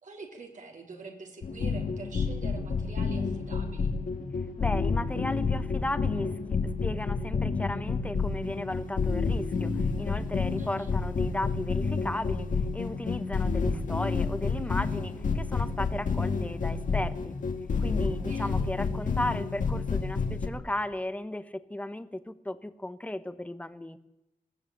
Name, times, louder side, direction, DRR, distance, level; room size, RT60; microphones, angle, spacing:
voice 1, 0.0-3.9 10.6-10.9 18.0-18.7, right 4 dB, 55° right, 2 dB, 3.3 m, -46 dB
mexican shoes at the doors of sky, 1.4-20.5, left 4 dB, 60° left, 2.4 m, -29 dB
voice 2, 4.6-17.4 17.8-24.0, left 1 dB, 10° left, 12 dB, 1.0 m, -35 dB
21.0 x 16.5 x 8.7 m, 0.91 s
wide cardioid pair, 175°, 15 cm